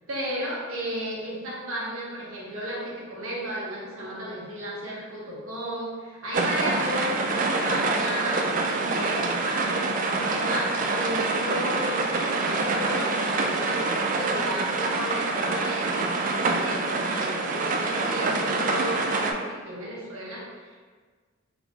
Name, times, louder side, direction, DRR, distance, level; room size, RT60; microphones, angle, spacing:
voice 1, 0.1-20.8, equal, 85° right, -5 dB, 1.0 m, -34 dB
sound 1, 6.3-19.3, right 3 dB, 40° right, 0.3 m, -26 dB
3.6 x 2.9 x 3.5 m, 1.5 s
head